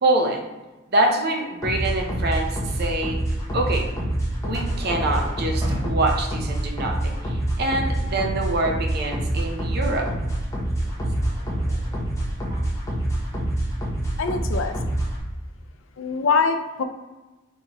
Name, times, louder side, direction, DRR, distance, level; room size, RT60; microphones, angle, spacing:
voice 1, 0.0-0.4 0.9-3.2 3.5-3.9 4.4-10.1, right 2 dB, 50° right, 2 dB, 0.6 m, -25 dB
sound 1, 1.6-15.2, right 1 dB, 15° left, 0.8 m, -26 dB
sound 2, 4.5-6.6 9.5-12.8 14.6-14.7 14.9-15.0, equal, 15° right, 0.8 m, -37 dB
voice 2, 14.2-14.8 16.0-16.8, left 5 dB, 70° left, 7 dB, 0.4 m, -23 dB
4.2 x 3.6 x 2.9 m, 1.1 s
head